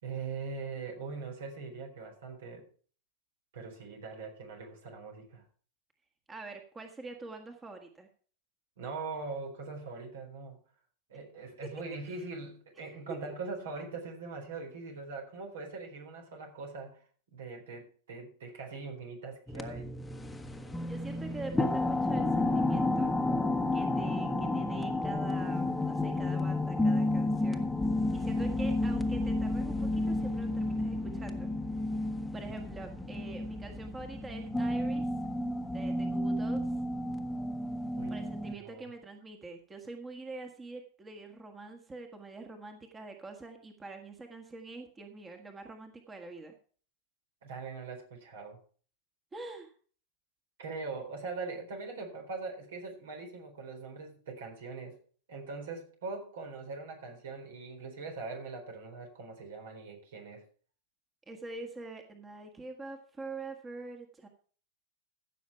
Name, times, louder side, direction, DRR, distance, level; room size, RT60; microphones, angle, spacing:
voice 1, 0.0-2.7 3.5-5.5 8.8-10.6 11.1-17.0 17.3-19.9 28.4-28.7 37.8-38.3 38.6-38.9 47.4-48.6 50.6-55.0 55.3-60.4, right 4 dB, 70° right, 3 dB, 4.0 m, -42 dB
voice 2, 6.3-8.1 20.9-23.1 23.7-27.7 28.1-31.5 32.3-35.1 35.7-36.7 38.1-46.5 49.3-49.7 61.3-64.3, right 3 dB, 20° right, 4 dB, 1.6 m, -45 dB
sound 1, 19.5-38.5, left 2 dB, 10° left, 1.2 m, -31 dB
15.5 x 6.6 x 4.6 m, 0.43 s
hypercardioid pair, 95°, 0 cm